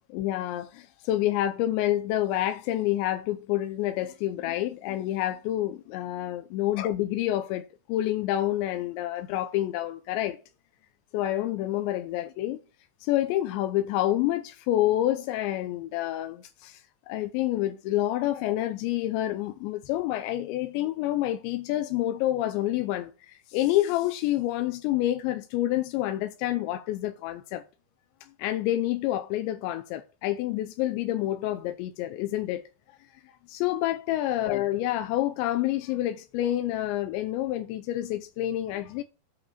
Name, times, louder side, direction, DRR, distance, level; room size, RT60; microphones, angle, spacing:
voice 1, 0.1-10.4 11.1-12.6 13.0-27.6 28.4-32.7 33.5-39.0, left 14 dB, 85° left, 2.9 m, -28 dB
8.4 x 5.2 x 6.6 m
omnidirectional pair, 5.2 m